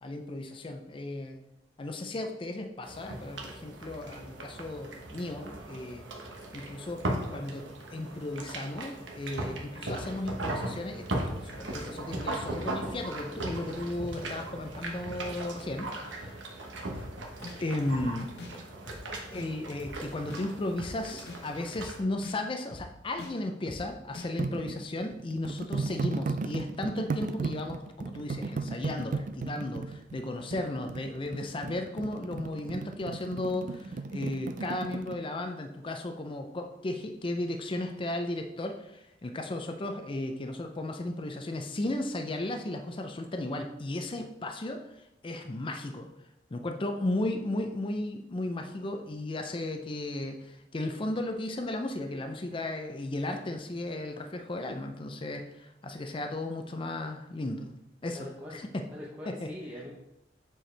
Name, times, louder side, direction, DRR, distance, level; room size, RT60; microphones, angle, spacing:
voice 1, 0.0-1.4 1.8-6.0 6.5-7.0 7.3-16.5 17.6-18.3 19.3-46.1 46.5-57.7 58.0-58.9 59.3-59.5, left 1 dB, 30° left, 5 dB, 0.5 m, -35 dB
sound 1, 2.8-22.0, right 1 dB, 85° right, 1.1 m, -38 dB
sound 2, 16.9-17.1 17.4-17.6 17.9-18.0 18.4-18.5 18.9-19.0 19.3-19.5 19.8-20.0 20.3-20.4 20.8-20.9 21.3-21.4 21.7-21.9 22.2-22.4 22.7-22.8 23.2-23.3 23.7-23.8 24.1-24.3, left 2 dB, 65° left, 1.1 m, -43 dB
sound 3, 24.4-35.2, right 4 dB, 45° right, 0.4 m, -35 dB
voice 2, 58.1-58.6 58.9-59.9, left 1 dB, 10° right, -5 dB, 0.8 m, -42 dB
7.4 x 4.6 x 3.3 m, 0.87 s
head